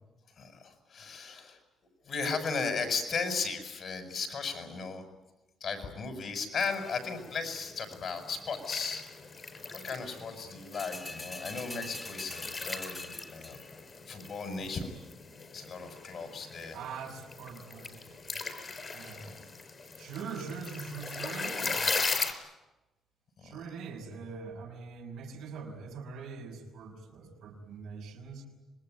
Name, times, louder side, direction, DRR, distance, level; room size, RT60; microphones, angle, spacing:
voice 1, 0.4-1.6 2.0-5.0 5.6-9.0 9.7-13.6 14.1-14.9 15.5-16.8 19.2-19.4 23.4-23.6, left 4 dB, 55° left, 7 dB, 6.9 m, -36 dB
sound 1, 6.6-22.3, left 4 dB, 40° left, 4.8 m, -39 dB
sound 2, 10.7-13.8 14.2-14.3, left 2 dB, 20° left, 3.5 m, -43 dB
voice 2, 16.7-18.2 18.9-19.3 20.0-21.9 23.4-28.5, right 5 dB, 80° right, 2 dB, 6.2 m, -42 dB
26.5 x 21.0 x 9.5 m, 1.1 s
cardioid pair, 90°, 0 cm